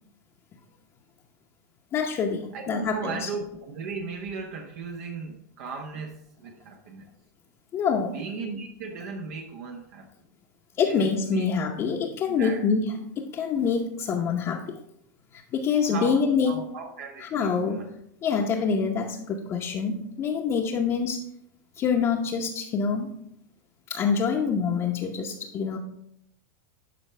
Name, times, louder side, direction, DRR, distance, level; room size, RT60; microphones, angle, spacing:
voice 1, 1.9-3.3 7.7-8.2 10.8-14.8 15.3-16.6 17.2-17.8 18.2-21.2 21.8-23.1 23.9-25.8, left 6 dB, 30° left, -1 dB, 0.8 m, -26 dB
voice 2, 2.5-7.1 8.1-10.1 10.8-11.4 11.8-12.0 12.3-12.6 15.9-17.9, right 4 dB, 65° right, 3 dB, 1.0 m, -37 dB
11.5 x 4.5 x 3.3 m, 0.73 s
supercardioid pair, 130°, 9 cm